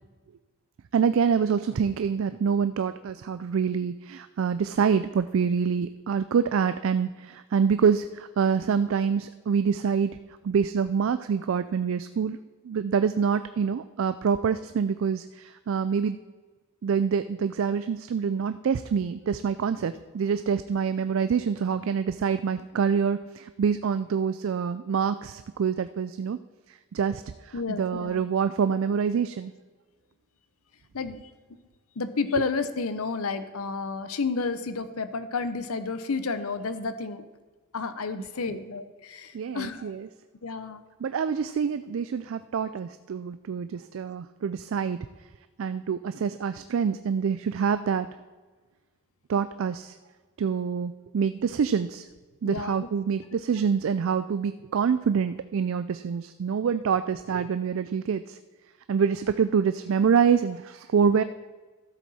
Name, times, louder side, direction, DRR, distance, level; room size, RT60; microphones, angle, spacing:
voice 1, 0.9-10.1 10.4-12.4 12.6-16.2 16.8-26.4 26.7-29.5 38.4-38.6 39.3-40.1 41.0-45.0 45.6-48.1 49.3-50.0 50.4-52.0 52.4-58.4 58.9-61.2, right 6 dB, 65° right, 12 dB, 0.3 m, -26 dB
voice 2, 27.5-28.2 30.9-31.2 32.0-37.3 37.7-39.9 40.4-40.8 52.4-52.9 53.3-53.4, left 4 dB, 80° left, 11 dB, 0.8 m, -31 dB
13.0 x 7.5 x 4.2 m, 1.3 s
head